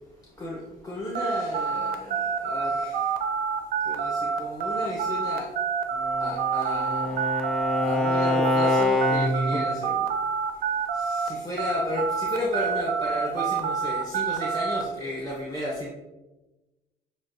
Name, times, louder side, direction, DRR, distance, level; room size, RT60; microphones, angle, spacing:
voice 1, 0.3-3.2 3.8-5.8 6.2-7.3 7.8-10.2 10.5-15.9, left 1 dB, 20° left, -4 dB, 0.8 m, -33 dB
sound 1, 1.1-11.3 11.6-14.8, right 6 dB, 60° right, 0.4 m, -27 dB
Bowed string instrument, 6.1-9.7, left 2 dB, 5° left, 0.3 m, -26 dB
6.9 x 2.3 x 2.6 m, 1.1 s
cardioid pair, 110°, 17 cm